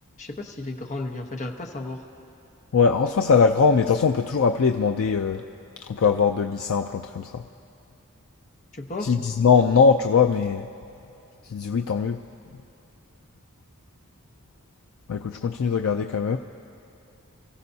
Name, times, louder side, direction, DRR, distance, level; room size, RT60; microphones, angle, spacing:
voice 1, 0.2-2.0 8.7-9.1, left 2 dB, 35° left, 2 dB, 1.0 m, -33 dB
voice 2, 2.7-5.4 5.9-7.4 9.0-10.7 11.5-12.2 15.1-16.4, left 5 dB, 80° left, 5 dB, 0.4 m, -21 dB
27.0 x 15.5 x 2.8 m, 2.8 s
head